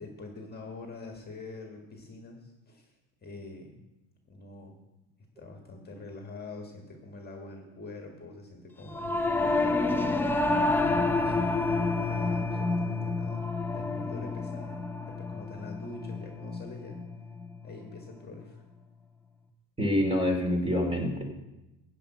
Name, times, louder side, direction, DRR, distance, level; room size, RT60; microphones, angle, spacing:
voice 1, 0.0-2.9 3.2-3.8 4.3-4.8 5.4-10.0 10.6-13.5 13.7-17.0 17.6-18.6, left 2 dB, 25° left, 2 dB, 1.8 m, -45 dB
Singing / Musical instrument, 8.9-18.5, left 3 dB, 5° left, 0.6 m, -29 dB
voice 2, 19.8-21.2, left 1 dB, 15° right, 2 dB, 2.6 m, -26 dB
14.0 x 5.2 x 8.8 m, 0.99 s
cardioid pair, 135°, 41 cm